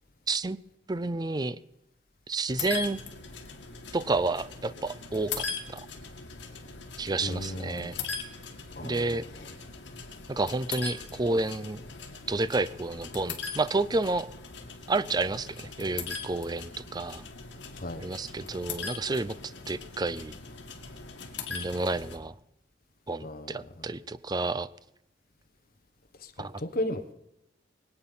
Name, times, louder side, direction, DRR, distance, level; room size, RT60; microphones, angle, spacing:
voice 1, 0.3-0.6 0.9-1.6 2.3-3.0 3.9-5.9 7.0-8.0 8.8-9.3 10.3-11.8 12.3-14.3 14.9-17.2 18.0-20.3 21.5-22.3 23.1-24.7 26.4-26.5, right 3 dB, 20° right, 16 dB, 0.5 m, -30 dB
sound 1, 2.5-22.2, left 5 dB, 70° left, 2.4 m, -40 dB
voice 2, 7.2-7.9 8.7-9.5 17.7-18.1 23.2-23.9 26.2-27.1, left 1 dB, 50° left, 5 dB, 1.1 m, -36 dB
23.0 x 8.9 x 5.6 m, 0.88 s
head